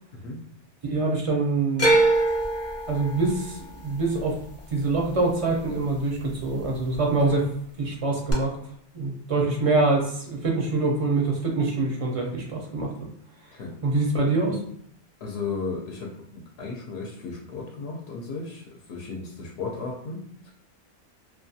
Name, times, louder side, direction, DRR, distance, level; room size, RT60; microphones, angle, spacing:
voice 1, 0.8-1.9 2.9-4.4 4.7-7.5 7.8-8.6 8.9-12.9 13.8-14.6, right 3 dB, 50° right, 0 dB, 0.4 m, -25 dB
sound 1, 1.8-6.0 6.3-7.0 8.3-8.4, right 2 dB, 20° left, 0.4 m, -25 dB
voice 2, 15.2-20.5, left 4 dB, 75° left, -1 dB, 0.8 m, -35 dB
2.4 x 2.3 x 2.6 m, 0.66 s
omnidirectional pair, 1.1 m